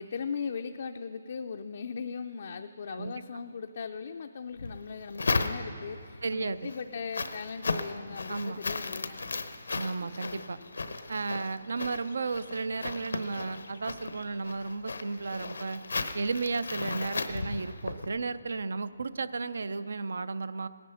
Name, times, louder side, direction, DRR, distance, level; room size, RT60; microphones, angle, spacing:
voice 1, 0.0-9.3 10.0-10.7, left 5 dB, 50° left, 6 dB, 0.4 m, -39 dB
sound 1, 4.6-6.0 6.5-18.1, left 3 dB, 85° left, 0.9 m, -35 dB
voice 2, 6.2-6.7 8.3-8.6 9.8-10.6 11.1-15.8 16.1-20.7, right 4 dB, 70° right, 15 dB, 0.5 m, -34 dB
17.5 x 10.5 x 5.6 m, 2.5 s
hypercardioid pair, 170°, 0 cm